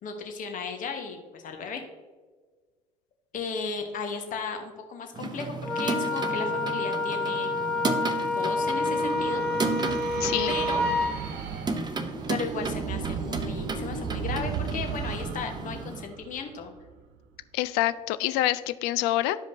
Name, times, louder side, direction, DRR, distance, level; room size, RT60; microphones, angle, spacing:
voice 1, 0.0-1.8 3.3-7.5 8.3-9.5 10.5-10.8 12.3-16.7, left 5 dB, 45° left, 5 dB, 1.2 m, -35 dB
sound 1, 5.1-16.0, right 3 dB, 20° right, 0.8 m, -34 dB
Wind instrument woodwind instrument, 5.6-11.2, left 2 dB, 5° left, 1.2 m, -28 dB
sound 2, 7.4-17.0, right 6 dB, 60° right, 1.1 m, -36 dB
voice 2, 10.2-10.5 17.5-19.4, left 15 dB, 60° left, 14 dB, 0.4 m, -26 dB
12.0 x 5.0 x 2.6 m, 1.4 s
figure-of-eight pair, 55°, 19 cm